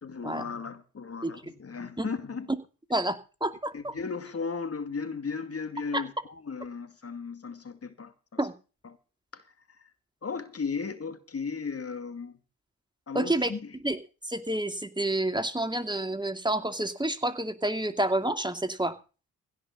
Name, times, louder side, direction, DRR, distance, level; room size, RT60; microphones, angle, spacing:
voice 1, 0.0-2.5 3.7-8.4 8.8-9.0 9.3-9.9 10.2-12.4 13.1-13.8, left 5 dB, 40° left, 2.3 m, -36 dB
voice 2, 2.9-3.9 5.9-6.0 8.4-8.5 13.1-13.5 13.8-14.0 14.2-18.9, right 1 dB, 10° right, 2.4 m, -29 dB
16.5 x 5.8 x 8.3 m
supercardioid pair, 55°, 36 cm